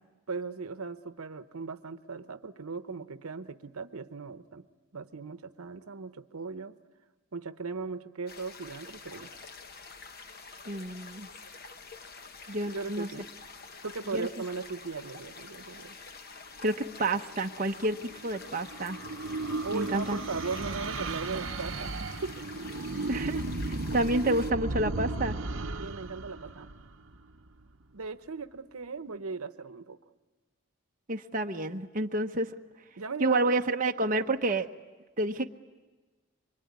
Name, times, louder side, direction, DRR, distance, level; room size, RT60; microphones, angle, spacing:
voice 1, 0.3-4.7 4.9-6.7 7.3-9.3 12.7-13.3 13.8-15.9 19.6-21.9 22.2-22.3 25.8-26.7 27.9-30.0 33.0-33.6, right 4 dB, 85° right, 11 dB, 0.9 m, -38 dB
sound 1, 8.3-24.5, left 4 dB, 45° left, 1.1 m, -47 dB
voice 2, 10.6-11.3 12.5-13.1 14.1-14.3 16.6-19.0 19.7-20.2 23.1-25.4 31.1-32.5 33.2-34.7 35.2-35.5, right 2 dB, 40° right, 3 dB, 1.0 m, -29 dB
sound 2, 17.9-27.5, right 3 dB, 65° right, 1.0 m, -35 dB
25.0 x 24.0 x 9.6 m, 1.2 s
head